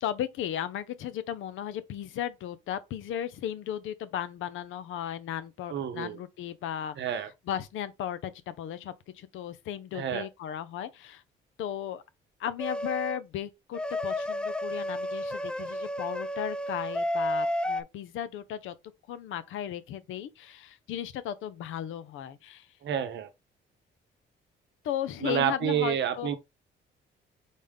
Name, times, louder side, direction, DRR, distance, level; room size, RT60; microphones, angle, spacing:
voice 1, 0.0-11.2 11.6-12.0 12.4-18.7 19.1-22.7 24.8-26.3, left 10 dB, 80° left, 0.6 m, -35 dB
voice 2, 5.7-6.2 7.0-7.3 9.9-10.3 22.8-23.3 25.2-26.4, right 9 dB, 65° right, 0.7 m, -29 dB
sound 1, 12.6-13.2 13.7-17.8, left 1 dB, 5° left, 0.4 m, -31 dB
4.1 x 3.5 x 3.4 m
cardioid pair, 90°, 20 cm